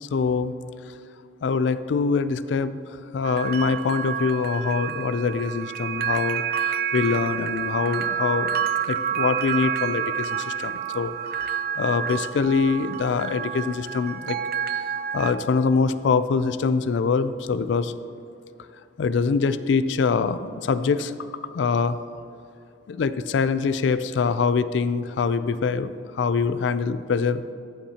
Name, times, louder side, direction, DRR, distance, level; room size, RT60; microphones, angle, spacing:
voice 1, 0.0-0.5 1.4-2.8 3.1-11.1 11.5-14.4 14.8-17.9 19.0-21.3 21.5-22.0 22.9-27.4, left 5 dB, 65° left, 13 dB, 0.3 m, -24 dB
sound 1, 3.2-15.3, right 8 dB, 50° right, 0.4 m, -29 dB
14.0 x 7.2 x 2.8 m, 2.5 s
head